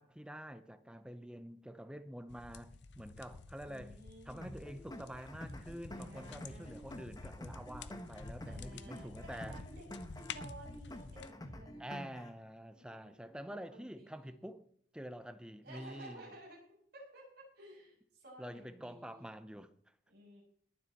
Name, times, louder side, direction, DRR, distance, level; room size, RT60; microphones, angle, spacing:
voice 1, 0.0-4.0 4.3-9.6 11.8-14.7 14.9-16.3 18.4-19.7, equal, 5° right, 0.7 m, -47 dB
sound 1, 2.3-11.3, left 4 dB, 70° left, 0.7 m, -50 dB
voice 2, 3.6-4.7 5.9-6.9 8.5-9.9 10.1-12.1 12.7-14.3 15.6-16.6 16.9-19.2 20.1-20.4, right 1 dB, 60° right, 6.8 m, -55 dB
sound 2, 4.4-12.4, left 1 dB, 20° left, 1.2 m, -48 dB
21.0 x 7.5 x 4.2 m
head